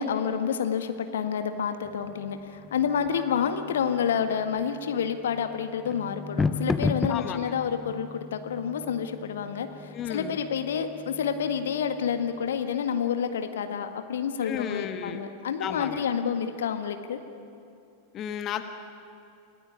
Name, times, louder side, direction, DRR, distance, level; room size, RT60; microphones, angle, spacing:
voice 1, 0.0-17.2, left 7 dB, 60° left, 8 dB, 1.7 m, -29 dB
sound 1, 1.8-12.6, left 3 dB, 10° left, 0.9 m, -36 dB
voice 2, 7.1-7.5 9.9-10.4 14.4-15.2 15.6-16.0 18.1-18.6, left 9 dB, 30° left, 8 dB, 1.5 m, -33 dB
29.0 x 18.0 x 9.6 m, 2.7 s
figure-of-eight pair, 90°, 0 cm